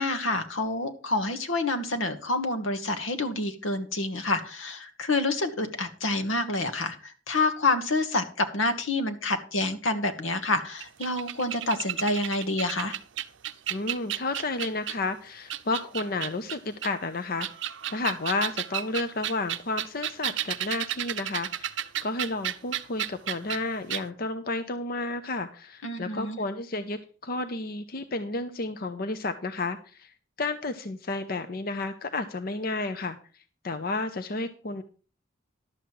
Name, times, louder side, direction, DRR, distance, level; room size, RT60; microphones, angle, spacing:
voice 1, 0.0-13.0 25.8-26.4, left 2 dB, 85° left, 8 dB, 1.4 m, -28 dB
sound 1, 10.8-15.1 15.5-16.9 17.3-23.6 23.9-24.0, right 11 dB, 65° right, 0.6 m, -33 dB
voice 2, 13.7-17.5 17.9-21.7 22.0-30.1 30.4-33.2 33.6-34.8, left 3 dB, 50° left, 9 dB, 0.7 m, -31 dB
11.5 x 7.5 x 4.6 m, 0.37 s
head